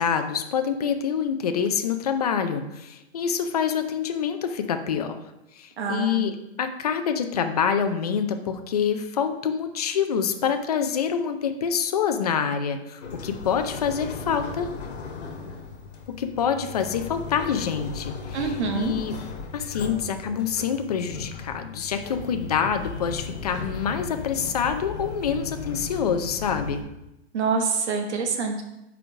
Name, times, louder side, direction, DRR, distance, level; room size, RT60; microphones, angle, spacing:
voice 1, 0.0-5.2 5.6-14.7 16.1-19.2 19.5-26.8, left 7 dB, 40° left, 7 dB, 0.4 m, -26 dB
voice 2, 5.8-6.3 18.3-18.9 27.3-28.6, right 5 dB, 90° right, 3 dB, 1.1 m, -26 dB
sound 1, 13.0-26.8, left 5 dB, 80° left, 1.6 m, -36 dB
4.9 x 4.6 x 4.8 m, 0.89 s
hypercardioid pair, 175°, 33 cm